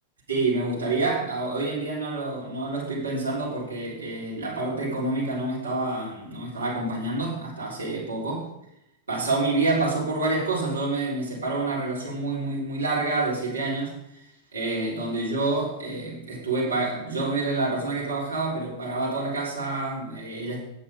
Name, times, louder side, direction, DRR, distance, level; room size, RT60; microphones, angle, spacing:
voice 1, 0.3-8.4 9.1-14.0 14.5-20.6, right 2 dB, 75° right, -5 dB, 3.4 m, -27 dB
9.1 x 7.0 x 5.0 m, 0.80 s
figure-of-eight pair, 90°, 0 cm